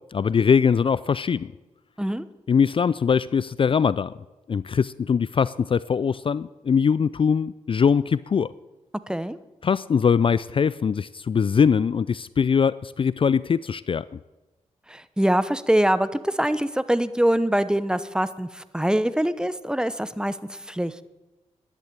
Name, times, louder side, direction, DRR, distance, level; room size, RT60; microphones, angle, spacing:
voice 1, 0.1-1.5 2.5-4.1 4.5-8.5 9.6-14.0, left 6 dB, 45° left, 18 dB, 0.4 m, -22 dB
voice 2, 14.9-20.9, right 1 dB, 5° right, 14 dB, 0.9 m, -24 dB
11.5 x 10.5 x 8.8 m, 1.1 s
cardioid pair, 60°, 13 cm